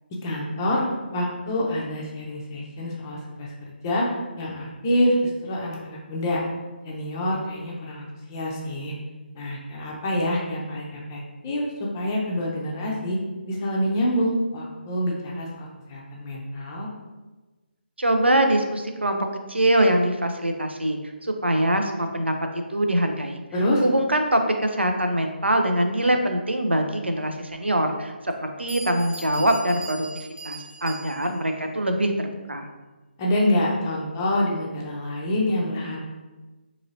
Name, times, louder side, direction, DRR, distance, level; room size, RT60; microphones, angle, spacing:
voice 1, 0.2-0.9 1.1-3.5 3.8-4.1 4.4-6.4 6.8-8.9 9.4-13.2 13.5-16.9 23.5-23.8 33.2-36.0, left 1 dB, 20° left, -3 dB, 0.5 m, -26 dB
voice 2, 18.0-23.4 23.8-32.7, right 1 dB, 90° right, 5 dB, 0.5 m, -23 dB
Bell, 27.5-27.6 28.3-28.4 28.7-31.5, right 2 dB, 65° right, 1.1 m, -40 dB
3.8 x 3.0 x 2.6 m, 1.2 s
figure-of-eight pair, 150°, 6 cm